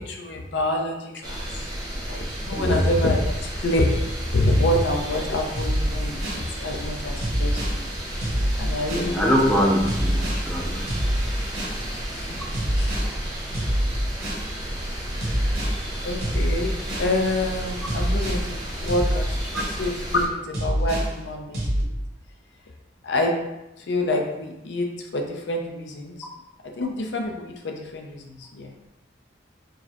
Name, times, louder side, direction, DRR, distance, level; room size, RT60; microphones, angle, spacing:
voice 1, 0.0-1.5 2.1-4.0 4.3-7.8 8.6-9.7 12.1-12.4 12.8-12.9 15.1-15.5 16.0-16.7 17.0-21.9 23.0-23.3 23.8-26.3 26.8-28.7, left 1 dB, 75° left, 2 dB, 0.6 m, -27 dB
sound 1, 1.2-20.2, equal, 20° right, 0.7 m, -32 dB
sound 2, 5.5-6.4 7.2-7.8 8.2-9.1 9.9-10.4 10.9-11.8 12.5-13.1 13.5-14.5 15.2-15.8 16.2-17.1 17.9-18.4 18.9-19.8 20.5-21.1 21.5-21.8, equal, 55° right, 1.1 m, -25 dB
voice 2, 8.9-10.8 19.5-19.6, equal, 5° left, -3 dB, 0.4 m, -23 dB
4.6 x 2.1 x 2.9 m, 0.94 s
head